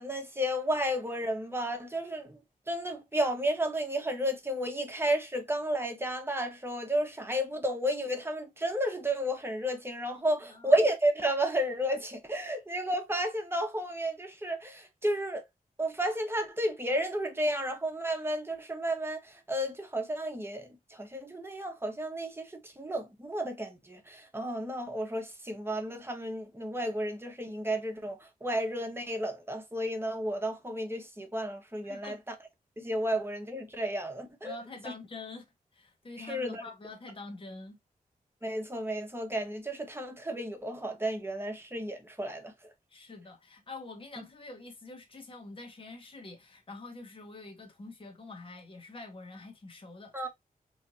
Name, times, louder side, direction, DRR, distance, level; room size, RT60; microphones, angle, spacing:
voice 1, 0.0-2.4 2.7-15.4 15.8-32.3 32.8-34.6 36.2-36.6 38.4-42.5 50.1-50.3, right 1 dB, 15° right, 1.0 m, -32 dB
voice 2, 31.8-32.2 34.4-35.4 35.7-37.8 42.9-50.3, left 3 dB, 35° left, 1.0 m, -46 dB
4.2 x 3.2 x 2.6 m
wide cardioid pair, 115°, 15 cm